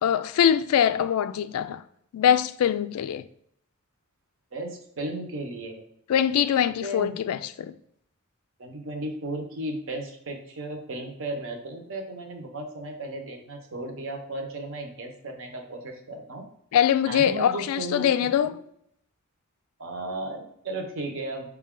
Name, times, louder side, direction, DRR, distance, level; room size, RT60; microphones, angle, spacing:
voice 1, 0.0-1.8 2.1-3.3 6.1-7.7 16.7-18.6, left 9 dB, 80° left, 0.3 m, -23 dB
voice 2, 4.5-5.9 6.8-7.2 8.6-16.4 17.1-18.1 18.4-18.5 19.8-21.6, right 1 dB, 65° right, 0.8 m, -35 dB
5.1 x 2.3 x 3.7 m
head